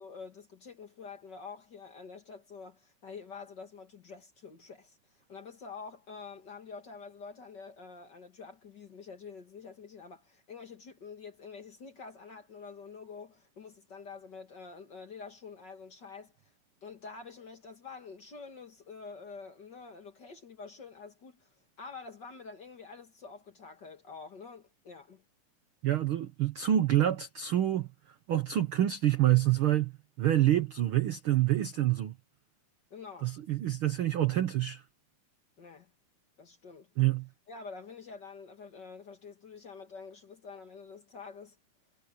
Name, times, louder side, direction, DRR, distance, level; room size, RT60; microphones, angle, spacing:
voice 1, 0.0-5.0 5.3-16.3 16.8-21.5 21.8-25.2 32.9-33.3 35.6-35.9 36.4-36.9 37.5-41.6, left 5 dB, 40° left, 1.9 m, -47 dB
voice 2, 25.8-27.9 28.3-29.9 30.2-32.1 33.2-34.8 37.0-37.3, right 13 dB, 75° right, 1.2 m, -27 dB
omnidirectional pair, 3.7 m